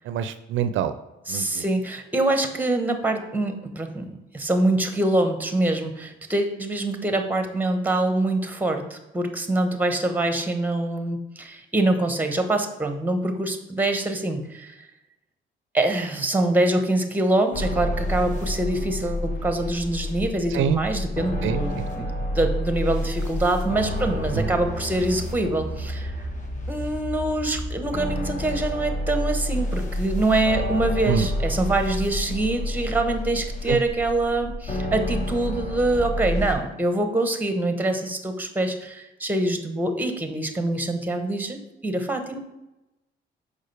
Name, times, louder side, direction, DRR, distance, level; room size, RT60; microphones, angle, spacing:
voice 1, 0.0-0.9 1.3-1.6 20.5-20.8 21.4-22.1 24.3-24.5 31.0-31.3 33.7-33.8, right 8 dB, 75° right, 11 dB, 0.4 m, -26 dB
voice 2, 1.3-14.7 15.7-26.1 26.7-42.4, right 2 dB, 10° right, 6 dB, 0.9 m, -25 dB
sound 1, 17.5-36.5, left 1 dB, 40° left, 1.3 m, -29 dB
6.4 x 5.0 x 3.3 m, 0.97 s
cardioid pair, 90°, 20 cm